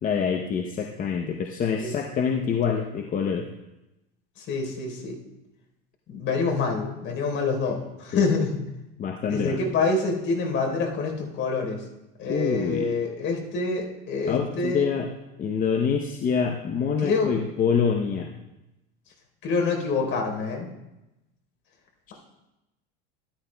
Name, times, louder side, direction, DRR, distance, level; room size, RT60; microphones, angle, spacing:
voice 1, 0.0-3.5 8.1-8.2 9.0-9.6 12.3-12.9 14.3-15.1 15.4-18.4 22.1-22.2, left 6 dB, 25° left, 3 dB, 0.6 m, -26 dB
voice 2, 4.4-5.2 6.1-8.6 9.3-11.8 12.2-14.9 17.0-17.4 19.4-20.7, left 4 dB, 45° left, 1 dB, 3.7 m, -26 dB
13.0 x 13.0 x 2.2 m, 0.95 s
supercardioid pair, 130°, 30 cm